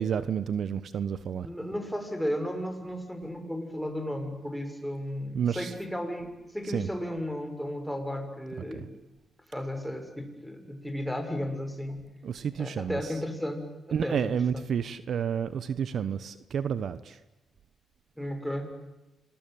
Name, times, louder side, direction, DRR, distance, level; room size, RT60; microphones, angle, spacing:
voice 1, 0.0-1.5 5.3-5.7 6.7-6.9 8.7-8.8 12.2-13.0 13.9-17.2, right 7 dB, 65° right, 14 dB, 1.2 m, -30 dB
voice 2, 1.4-8.9 9.5-12.0 12.6-14.6 18.2-18.7, equal, ahead, 5 dB, 6.5 m, -34 dB
27.0 x 22.0 x 9.3 m, 1.0 s
cardioid pair, 75°, 0 cm